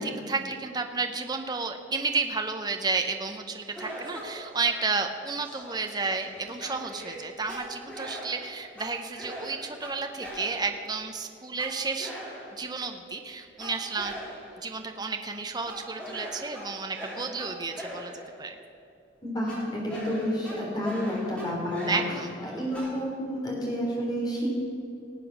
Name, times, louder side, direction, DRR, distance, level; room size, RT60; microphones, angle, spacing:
voice 1, 0.0-12.1 12.6-14.1 14.6-18.1 18.4-18.5 21.9-22.3, right 4 dB, 20° right, 5 dB, 0.7 m, -32 dB
sound 1, 3.7-10.9 11.6-12.8 13.6-14.7 15.7-18.4 19.5-23.0, equal, 5° left, 3.0 m, -41 dB
voice 2, 19.2-24.6, equal, 20° left, -3 dB, 3.6 m, -30 dB
18.0 x 8.3 x 6.1 m, 2.6 s
head